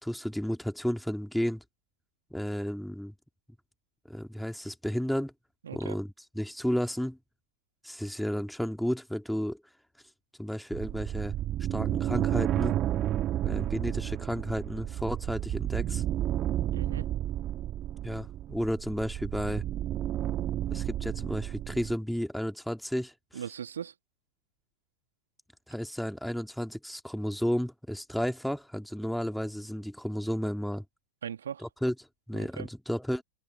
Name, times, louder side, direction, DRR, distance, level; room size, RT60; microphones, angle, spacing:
voice 1, 0.0-1.6 2.3-3.1 4.1-5.3 5.7-7.2 7.8-9.6 10.4-11.3 11.7-12.7 13.4-16.0 18.0-19.6 20.7-23.4 25.7-30.8 31.6-31.9 32.3-33.2, equal, ahead, 2.6 m, -32 dB
voice 2, 5.6-6.0 16.7-17.1 23.3-23.9 31.2-31.6 32.3-32.7, right 8 dB, 65° right, 2.8 m, -39 dB
sound 1, 10.7-22.0, right 12 dB, 30° right, 1.9 m, -31 dB
open air
figure-of-eight pair, 90°, 0 cm